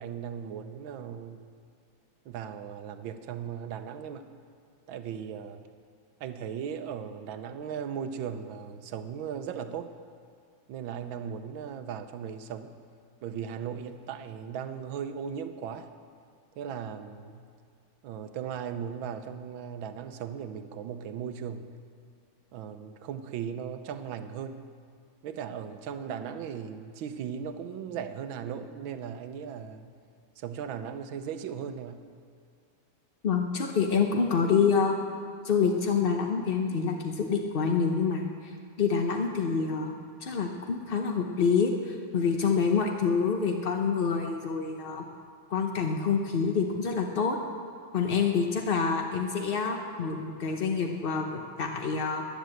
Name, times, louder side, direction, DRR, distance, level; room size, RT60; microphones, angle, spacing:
voice 1, 0.0-1.4 2.2-4.3 4.9-5.6 6.2-9.9 10.7-12.7 13.2-15.9 16.6-17.4 18.0-21.7 22.5-24.6 25.2-29.9 30.4-32.0, right 7 dB, 90° right, 9 dB, 1.6 m, -37 dB
voice 2, 33.2-35.0 35.4-38.5 38.8-39.9 40.2-45.0 45.5-47.4 47.9-52.2, left 5 dB, 60° left, 3 dB, 0.6 m, -27 dB
13.5 x 10.0 x 7.7 m, 2.3 s
omnidirectional pair, 2.1 m